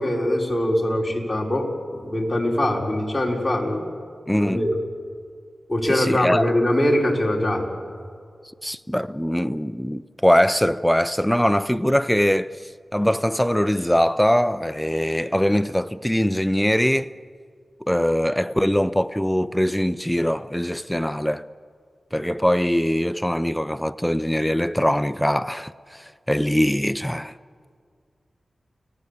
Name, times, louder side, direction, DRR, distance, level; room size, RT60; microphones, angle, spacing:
voice 1, 0.0-3.8 4.4-4.8 5.7-7.7, left 1 dB, 20° left, 5.0 m, -22 dB
voice 2, 4.3-4.6 5.9-6.5 8.6-17.1 17.8-21.5 22.1-27.3, equal, 5° left, 0.6 m, -22 dB
30.0 x 18.5 x 8.4 m
cardioid pair, 60°, 0 cm